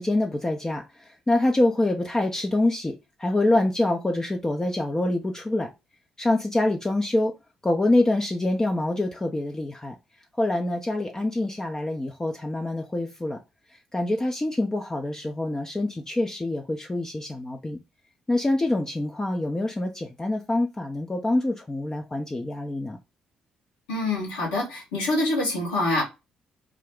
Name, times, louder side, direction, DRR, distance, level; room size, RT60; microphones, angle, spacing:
voice 1, 0.0-2.9 3.2-5.7 6.2-7.3 7.6-10.0 10.4-13.4 13.9-17.8 18.3-23.0, left 2 dB, 20° left, 0.4 m, -25 dB
voice 2, 23.9-26.0, left 2 dB, 85° left, 1.2 m, -25 dB
2.4 x 2.1 x 3.5 m
hypercardioid pair, 50°, 3 cm